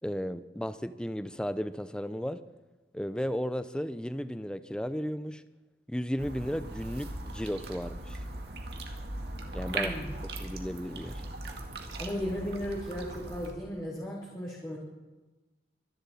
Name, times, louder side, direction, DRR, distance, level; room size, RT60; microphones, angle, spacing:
voice 1, 0.0-2.4 2.9-5.4 5.9-8.2 9.5-10.1 10.4-11.2, equal, 5° left, 12 dB, 0.5 m, -34 dB
sound 1, 6.2-13.5, right 2 dB, 70° right, 1.9 m, -39 dB
voice 2, 9.7-10.2 12.0-14.8, equal, 25° left, -6 dB, 3.0 m, -36 dB
24.5 x 11.0 x 4.2 m, 1.2 s
head